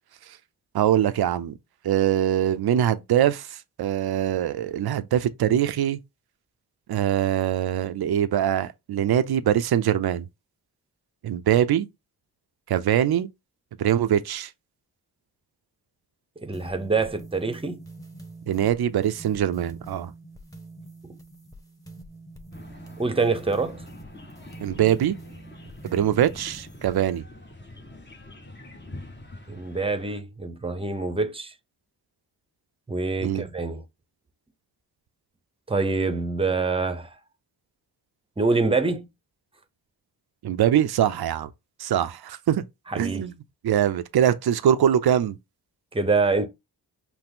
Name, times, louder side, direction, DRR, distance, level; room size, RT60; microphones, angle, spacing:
voice 1, 0.7-1.5 1.8-3.5 3.8-6.0 6.9-10.3 11.2-11.9 12.7-13.3 13.8-14.5 18.5-20.1 24.6-25.2 25.9-27.2 33.2-33.4 40.4-41.5 41.8-42.6 43.0-43.3 43.6-45.4, right 10 dB, 65° right, 0.6 m, -23 dB
voice 2, 16.4-17.8 21.0-21.1 23.0-23.8 29.5-31.5 32.9-33.8 35.7-37.2 38.4-39.1 42.9-43.3 45.9-46.5, right 3 dB, 15° right, 0.8 m, -25 dB
sound 1, 16.5-27.2, right 2 dB, 10° left, 1.2 m, -45 dB
sound 2, 22.5-30.2, left 2 dB, 25° left, 1.1 m, -45 dB
5.8 x 2.1 x 3.6 m
cardioid pair, 65°, 42 cm